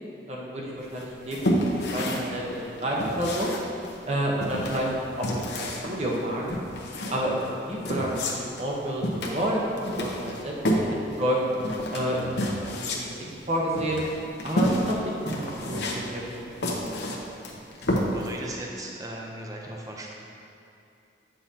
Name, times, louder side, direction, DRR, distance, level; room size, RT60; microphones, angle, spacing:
voice 1, 0.3-3.5 4.1-4.9 5.2-6.6 7.1-7.4 7.7-10.8 11.2-11.4 11.9-14.1 14.4-16.4, equal, 35° right, -3 dB, 0.9 m, -30 dB
sound 1, 0.9-18.4, equal, 70° left, 0.8 m, -30 dB
voice 2, 18.1-20.1, right 1 dB, 20° right, -1 dB, 0.5 m, -37 dB
8.5 x 5.7 x 2.8 m, 2.8 s
head